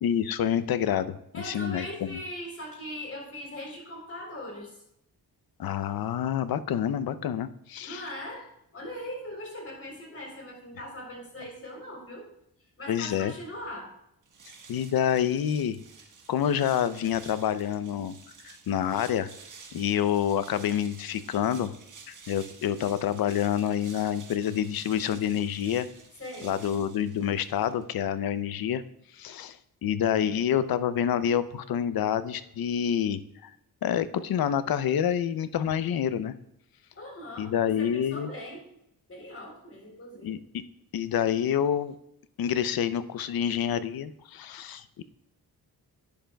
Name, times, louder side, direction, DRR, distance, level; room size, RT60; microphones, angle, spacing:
voice 1, 0.0-2.2 5.6-8.1 12.9-13.3 14.7-15.8 16.3-18.2 18.4-19.3 19.7-21.7 22.1-25.9 26.4-28.8 29.1-33.5 33.8-36.4 37.4-38.3 40.2-40.4 40.9-41.9 42.4-45.0, left 9 dB, 65° left, 13 dB, 0.6 m, -27 dB
voice 2, 1.3-4.7 7.8-8.5 8.7-12.3 12.8-13.9 26.2-26.6 37.0-38.6 39.1-40.3, left 1 dB, 35° left, 0 dB, 3.6 m, -40 dB
sound 1, 14.2-27.9, right 5 dB, 50° right, 1.4 m, -51 dB
11.5 x 10.0 x 2.3 m, 0.78 s
cardioid pair, 105°, 39 cm